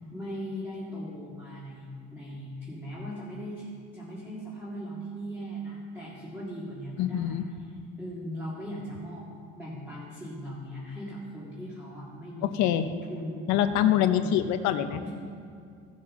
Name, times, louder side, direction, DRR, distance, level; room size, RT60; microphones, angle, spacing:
voice 1, 0.1-3.7 3.9-7.4 8.0-9.2 9.6-12.6 13.1-13.5 14.1-14.5 15.0-15.1, equal, 5° right, -7 dB, 2.0 m, -39 dB
voice 2, 7.0-7.4 12.5-12.9 13.5-15.0, left 10 dB, 65° left, 9 dB, 0.7 m, -24 dB
16.0 x 7.4 x 3.7 m, 2.3 s
cardioid pair, 150°, 31 cm